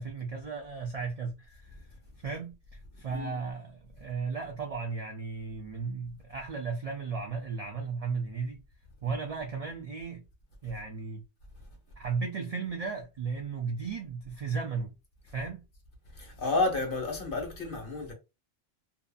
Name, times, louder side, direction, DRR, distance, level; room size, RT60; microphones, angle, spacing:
voice 1, 0.0-1.8 2.2-8.6 9.0-10.2 10.6-11.2 12.0-14.9 15.2-15.6, right 5 dB, 70° right, 0.3 m, -35 dB
voice 2, 16.1-18.1, left 3 dB, 50° left, 1.0 m, -31 dB
2.6 x 2.5 x 2.3 m
omnidirectional pair, 1.3 m